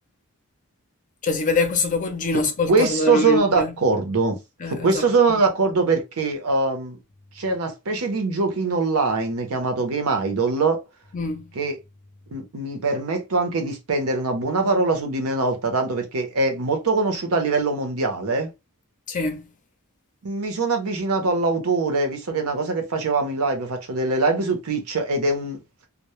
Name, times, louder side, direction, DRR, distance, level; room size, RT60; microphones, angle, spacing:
voice 1, 1.2-3.7 4.6-5.0 11.1-11.5 19.1-19.5, left 3 dB, 35° left, 0.5 m, -24 dB
voice 2, 2.7-4.4 4.7-7.0 7.4-10.8 11.5-11.7 12.3-18.5 20.2-25.6, right 3 dB, 70° right, 0.7 m, -22 dB
2.1 x 2.0 x 3.0 m
head